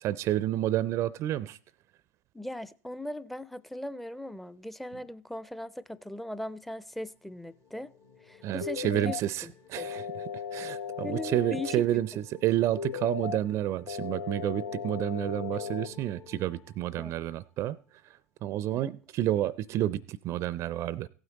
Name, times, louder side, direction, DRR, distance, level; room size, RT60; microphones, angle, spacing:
voice 1, 0.0-1.6 8.4-17.8 18.4-21.1, right 13 dB, 45° right, 0.5 m, -30 dB
voice 2, 2.3-7.9 8.2-9.2 9.4-9.5 9.8-9.9 11.0-12.0 17.0-17.1 18.7-18.9, left 1 dB, ahead, 0.6 m, -39 dB
sound 1, 6.9-17.5, left 7 dB, 55° left, 2.4 m, -53 dB
sound 2, 8.6-9.2 9.8-11.8 12.8-13.4 13.9-15.9, left 7 dB, 80° left, 0.4 m, -36 dB
15.5 x 9.0 x 4.0 m
figure-of-eight pair, 75°, 7 cm